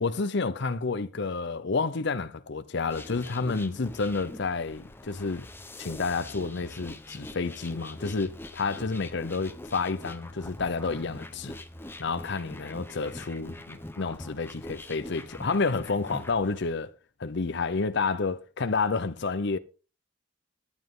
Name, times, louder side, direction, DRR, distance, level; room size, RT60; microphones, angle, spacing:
voice 1, 0.0-5.5 5.8-11.5 12.0-16.9 17.2-19.6, left 4 dB, 60° left, 0.7 m, -30 dB
sound 1, 2.9-16.6, left 1 dB, 10° left, 1.0 m, -43 dB
14.5 x 10.0 x 3.7 m
head